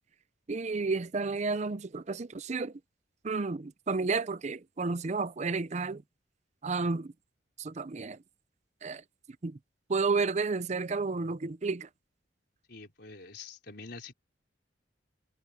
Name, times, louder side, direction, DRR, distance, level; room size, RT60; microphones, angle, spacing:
voice 1, 0.5-2.8 3.2-6.0 6.6-7.1 7.6-8.2 8.8-9.0 9.4-9.6 9.9-11.9, right 4 dB, 40° right, 0.5 m, -31 dB
voice 2, 12.7-14.1, left 4 dB, 60° left, 4.9 m, -46 dB
head